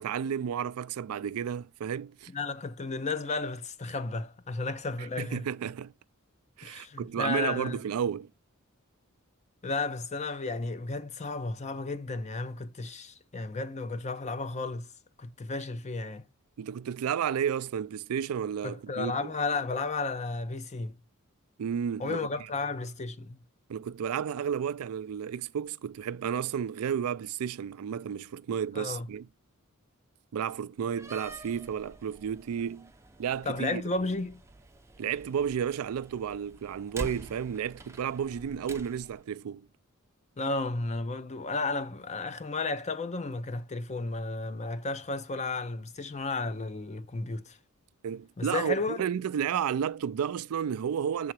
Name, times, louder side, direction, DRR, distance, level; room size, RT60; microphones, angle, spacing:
voice 1, 0.0-2.3 5.0-5.9 6.6-8.3 16.6-19.3 21.6-22.3 23.7-29.3 30.3-32.9 33.2-33.8 35.0-39.7 48.0-51.3, right 8 dB, 90° right, 0.4 m, -32 dB
voice 2, 2.3-5.4 6.6-7.8 9.6-14.9 15.2-16.2 18.6-21.0 22.0-23.4 28.7-29.1 33.4-34.4 40.4-47.6 48.4-49.0, left 3 dB, 30° left, 0.6 m, -33 dB
Slam, 30.8-39.2, right 2 dB, 15° right, 0.5 m, -47 dB
6.7 x 3.8 x 4.5 m
head